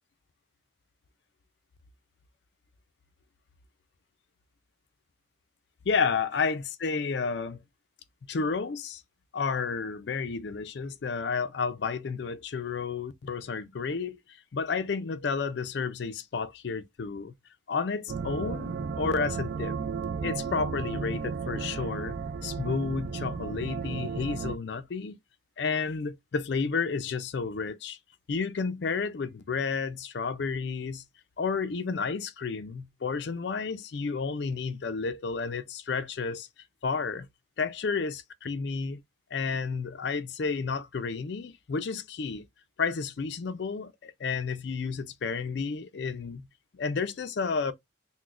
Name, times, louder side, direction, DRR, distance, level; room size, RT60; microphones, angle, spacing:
voice 1, 5.9-7.6 8.3-9.0 9.3-17.3 17.7-19.8 20.2-25.2 25.6-28.0 28.3-31.0 31.4-36.5 36.8-37.3 37.6-39.0 39.3-42.5 42.8-46.5 46.7-47.7, left 5 dB, 60° left, 0.4 m, -31 dB
sound 1, 18.1-24.6, right 5 dB, 50° right, 0.3 m, -34 dB
5.9 x 2.1 x 2.4 m
head